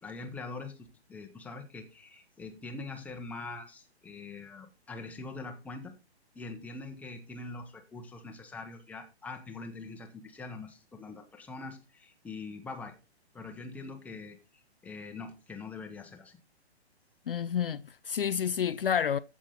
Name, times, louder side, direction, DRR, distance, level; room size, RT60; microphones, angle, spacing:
voice 1, 0.0-5.9 6.3-12.9 13.3-16.4, left 3 dB, 5° left, 1.1 m, -43 dB
voice 2, 17.3-19.2, left 8 dB, 55° left, 0.5 m, -29 dB
14.5 x 6.1 x 4.0 m
figure-of-eight pair, 125°, 33 cm